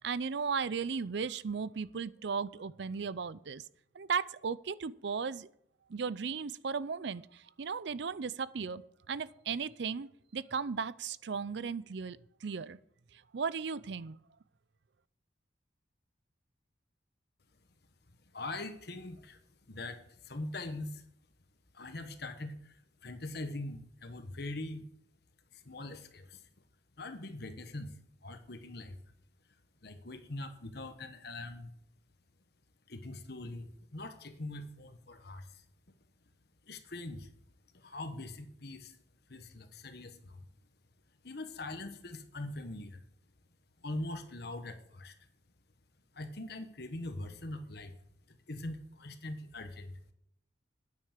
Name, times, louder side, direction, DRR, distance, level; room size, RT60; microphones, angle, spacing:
voice 1, 0.0-3.6 3.9-5.5 5.9-8.8 9.1-12.8 13.3-14.2, right 5 dB, 65° right, 18 dB, 0.5 m, -36 dB
voice 2, 18.3-19.4 19.7-21.0 21.7-24.9 25.5-26.5 27.0-27.9 28.2-29.0 29.8-31.7 32.9-35.6 36.7-37.3 37.7-39.0 39.3-40.4 41.2-43.0 43.8-45.1 46.1-47.9 48.3-50.0, left 2 dB, 55° left, 8 dB, 1.2 m, -42 dB
9.7 x 9.2 x 6.6 m, 0.71 s
head